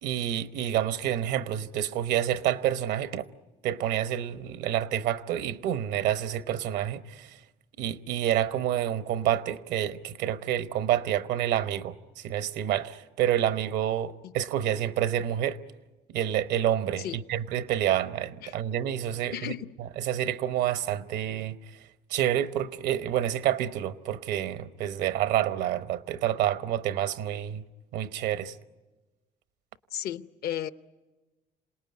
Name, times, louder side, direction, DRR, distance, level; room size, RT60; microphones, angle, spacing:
voice 1, 0.0-3.2 3.6-7.3 7.8-11.9 12.2-15.6 16.1-19.4 20.1-21.6 22.1-27.6 27.9-28.5, right 11 dB, 85° right, 1.0 m, -28 dB
voice 2, 19.3-19.7 29.9-30.7, left 11 dB, 70° left, 0.8 m, -34 dB
27.5 x 19.0 x 9.5 m
cardioid pair, 110°, 17 cm